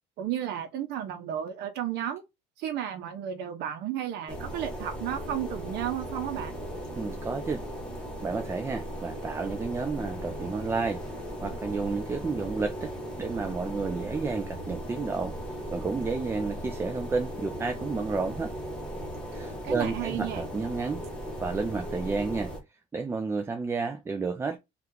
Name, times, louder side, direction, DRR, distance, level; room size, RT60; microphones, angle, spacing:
voice 1, 0.2-2.2 2.6-6.5 19.6-20.4, right 10 dB, 75° right, 0.7 m, -33 dB
sound 1, 4.3-22.6, equal, 5° left, 1.1 m, -37 dB
voice 2, 7.0-7.7 8.2-11.0 11.4-15.4 15.7-18.5 19.3-21.0 21.4-22.5 22.9-24.6, right 4 dB, 15° right, 0.3 m, -31 dB
2.8 x 2.4 x 3.4 m
cardioid pair, 135°, 17 cm